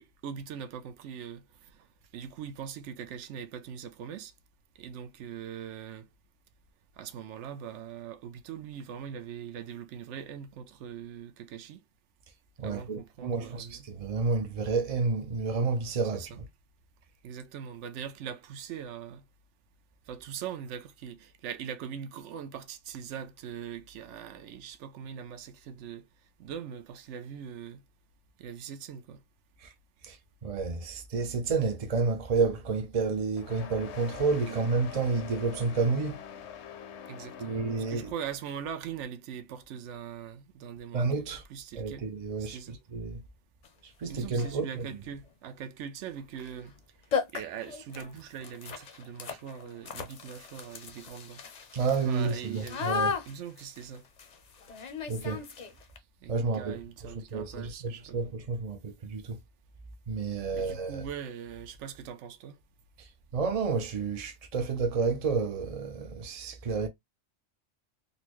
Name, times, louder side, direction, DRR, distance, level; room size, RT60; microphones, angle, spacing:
voice 1, 0.0-1.9 2.1-4.3 4.8-6.1 7.0-11.8 12.6-13.9 16.1-16.4 17.2-19.2 20.1-26.1 26.4-27.8 28.4-29.2 34.5-34.6 37.1-42.1 42.4-42.8 44.1-46.8 47.3-51.4 52.0-52.9 53.3-54.0 56.2-58.3 60.5-62.6, right 8 dB, 80° right, 0.9 m, -41 dB
voice 2, 12.6-16.3 29.6-29.7 30.0-30.2 30.4-36.2 37.4-38.1 40.9-41.4 41.8-43.2 43.8-44.8 51.7-53.1 55.1-55.4 56.3-56.8 57.0-59.4 60.1-61.0 63.0-66.9, right 4 dB, 50° right, 0.5 m, -30 dB
sound 1, 33.4-38.5, left 8 dB, 70° left, 0.9 m, -45 dB
sound 2, 43.6-43.7 44.3-44.6 46.4-46.5 46.8-46.9 47.1-56.0, left 5 dB, 45° left, 0.6 m, -36 dB
4.0 x 2.2 x 2.9 m
omnidirectional pair, 1.2 m